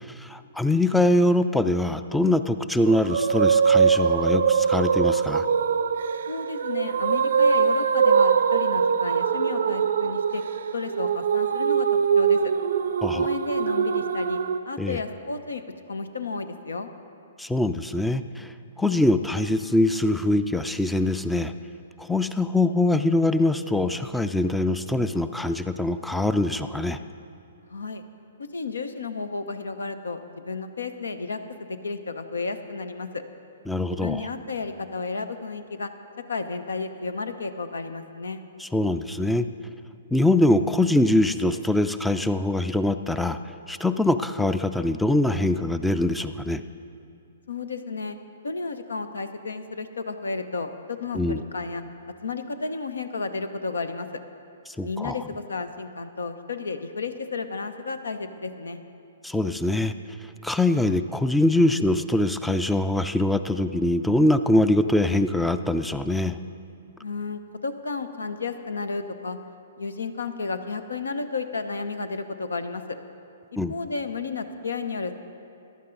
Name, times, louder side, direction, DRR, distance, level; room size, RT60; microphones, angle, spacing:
voice 1, 0.2-5.5 13.0-13.3 14.8-15.0 17.4-21.5 22.0-27.0 33.7-34.2 38.6-39.5 40.1-43.4 43.7-46.6 51.1-51.4 54.7-55.2 59.2-59.9 60.4-66.4 73.6-73.7, left 1 dB, 5° left, 11 dB, 0.4 m, -23 dB
sound 1, 2.9-14.6, right 6 dB, 65° right, 0.5 m, -22 dB
voice 2, 6.3-10.4 10.7-11.9 12.2-12.4 13.1-14.4 14.6-15.6 15.9-16.9 27.7-28.0 28.5-33.2 33.9-35.9 36.3-38.4 47.5-48.2 48.4-51.8 52.2-54.1 54.8-58.8 67.0-69.4 69.8-72.8 73.7-75.1, left 4 dB, 80° left, 10 dB, 0.7 m, -32 dB
15.0 x 11.0 x 3.9 m, 2.5 s
hypercardioid pair, 125°, 0 cm